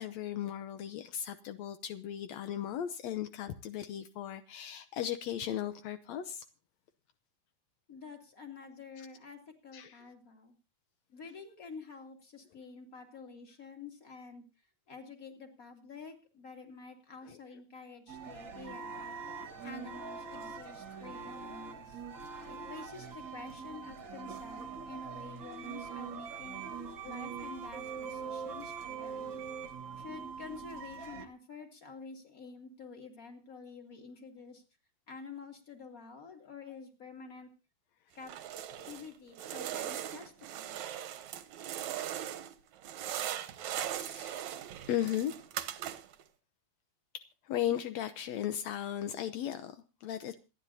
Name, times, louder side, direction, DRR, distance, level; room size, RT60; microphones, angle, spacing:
voice 1, 0.0-6.4 9.0-9.1 9.7-10.0 17.2-17.4 38.8-38.9 44.0-44.4 44.9-45.4 47.1-50.4, left 11 dB, 80° left, 10 dB, 1.5 m, -36 dB
voice 2, 7.9-10.6 11.1-14.4 14.9-19.2 19.6-22.0 22.4-26.6 27.0-29.3 30.0-34.6 35.1-37.5 38.1-38.3 38.8-40.8, left 4 dB, 25° left, 3 dB, 2.9 m, -49 dB
sound 1, 18.1-31.3, right 6 dB, 45° right, 1.6 m, -43 dB
sound 2, 38.2-39.1 39.4-42.5 42.8-46.2, right 11 dB, 65° right, 2.0 m, -39 dB
27.5 x 11.0 x 2.8 m, 0.31 s
omnidirectional pair, 4.3 m